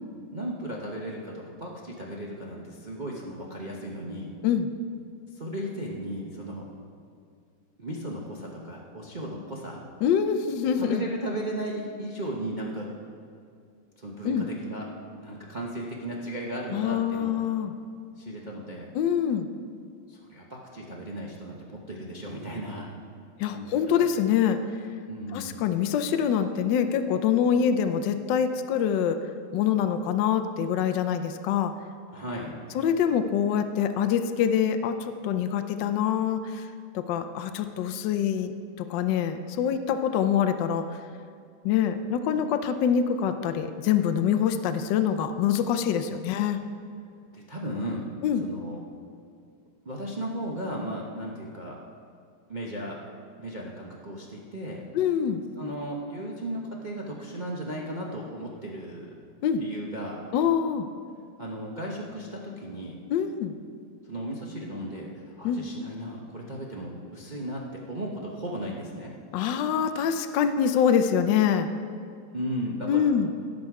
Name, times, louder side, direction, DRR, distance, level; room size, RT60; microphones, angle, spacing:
voice 1, 0.3-4.3 5.3-6.7 7.8-9.8 10.7-12.9 14.0-14.9 15.2-17.4 18.2-18.9 20.1-22.9 23.4-23.8 25.1-25.6 32.1-32.5 47.3-48.1 48.4-48.8 49.8-51.8 52.5-53.0 53.4-54.8 55.6-59.2 59.6-60.2 61.4-63.0 64.0-69.1 72.3-73.0, right 1 dB, 60° right, -3 dB, 0.4 m, -35 dB
voice 2, 10.0-11.0 14.2-14.5 16.7-17.7 18.9-19.5 23.4-24.6 25.3-29.2 29.5-31.7 32.7-36.7 36.9-38.5 38.8-40.9 41.6-46.6 48.2-48.5 54.9-55.4 59.4-59.6 60.3-60.9 63.1-63.5 65.4-65.7 69.3-71.7 72.9-73.3, left 8 dB, 70° left, 9 dB, 1.1 m, -25 dB
17.0 x 6.4 x 4.7 m, 2.3 s
omnidirectional pair, 2.4 m